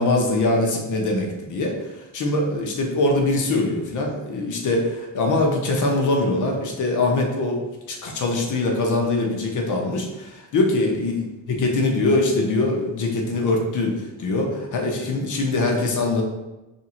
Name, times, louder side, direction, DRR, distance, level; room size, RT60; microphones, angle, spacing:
voice 1, 0.0-7.6 7.9-16.2, left 2 dB, 50° left, 1 dB, 0.9 m, -23 dB
3.5 x 2.7 x 4.3 m, 1.1 s
cardioid pair, 120°, 38 cm